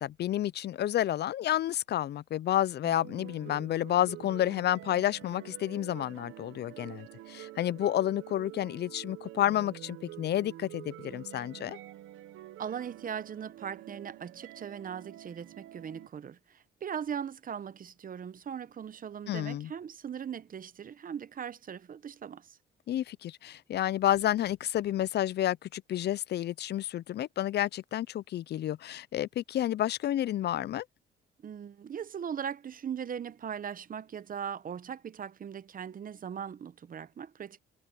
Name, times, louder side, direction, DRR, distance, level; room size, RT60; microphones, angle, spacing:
voice 1, 0.0-11.8 19.3-19.7 22.9-30.8, left 12 dB, 60° left, 0.5 m, -30 dB
sound 1, 2.8-16.1, right 14 dB, 85° right, 1.0 m, -48 dB
voice 2, 12.6-22.6 31.4-37.6, right 8 dB, 45° right, 0.9 m, -39 dB
cardioid pair, 90°, 20 cm